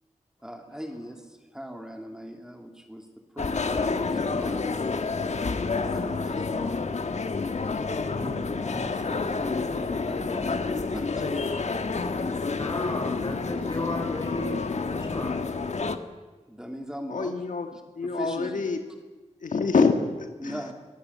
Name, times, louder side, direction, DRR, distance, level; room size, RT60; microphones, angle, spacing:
voice 1, 0.4-3.1 3.3-4.8 5.5-6.9 8.5-11.3 16.5-17.3 17.7-17.8 18.2-18.6 20.4-20.7, equal, 5° right, 3 dB, 2.9 m, -40 dB
sound 1, 3.4-16.0, left 4 dB, 60° left, 1.5 m, -29 dB
voice 2, 7.9-9.0 12.6-15.5, left 1 dB, 40° left, 4 dB, 5.7 m, -35 dB
voice 3, 17.1-17.7 17.9-18.8 19.4-20.7, left 4 dB, 90° left, 6 dB, 1.8 m, -26 dB
24.0 x 19.0 x 8.4 m, 1.3 s
wide cardioid pair, 90°, 13 cm